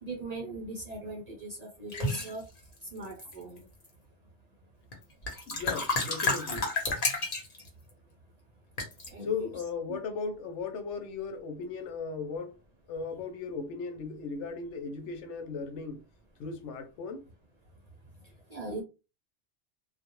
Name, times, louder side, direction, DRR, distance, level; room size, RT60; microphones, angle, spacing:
voice 1, 0.0-2.5 2.9-3.6 9.1-9.5 9.9-10.0 18.5-18.8, right 2 dB, 55° right, 0.4 m, -39 dB
sound 1, 1.9-2.3 3.0-3.6 4.9-5.0 5.2-7.7 8.8-9.1, left 2 dB, 40° left, 0.8 m, -30 dB
voice 2, 5.5-6.7 9.2-12.6 12.9-16.0 16.4-17.3, left 5 dB, 80° left, 0.9 m, -37 dB
2.3 x 2.0 x 2.9 m
omnidirectional pair, 1.2 m